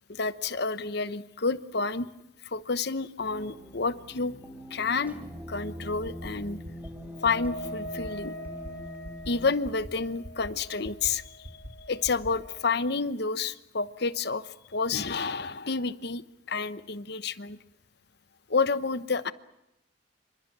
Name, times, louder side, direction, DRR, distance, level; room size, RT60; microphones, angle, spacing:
voice 1, 0.1-2.1 2.4-4.3 4.7-5.2 5.5-6.6 7.2-8.4 9.3-11.5 11.9-16.2 16.5-17.6 18.5-19.3, left 4 dB, 60° left, 14 dB, 1.0 m, -29 dB
sound 1, 3.2-9.5, equal, 10° right, 3.4 m, -43 dB
sound 2, 6.0-6.3 6.6-6.9 7.2-7.5 7.8-8.1 8.4-8.7 9.0-9.3 9.6-9.9 10.2-10.5 10.8-11.1 11.4-11.7 12.0-12.3, equal, 75° right, 3.9 m, -42 dB
Wind instrument woodwind instrument, 7.1-12.8, equal, 75° left, 2.6 m, -43 dB
28.0 x 26.0 x 6.1 m, 0.86 s
head